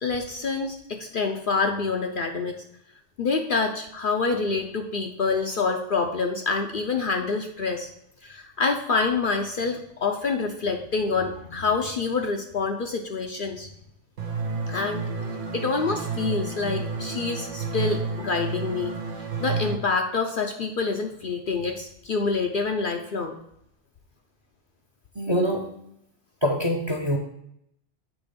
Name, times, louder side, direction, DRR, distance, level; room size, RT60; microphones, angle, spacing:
voice 1, 0.0-2.6 3.2-7.9 8.2-13.7 14.7-15.0 15.5-18.9 19.4-23.4, left 4 dB, 55° left, 3 dB, 0.7 m, -27 dB
sound 1, 14.2-19.7, right 4 dB, 80° right, 1.3 m, -31 dB
voice 2, 25.2-25.9 26.4-27.2, equal, 25° right, 2 dB, 0.7 m, -25 dB
8.2 x 3.1 x 5.1 m, 0.74 s
omnidirectional pair, 1.2 m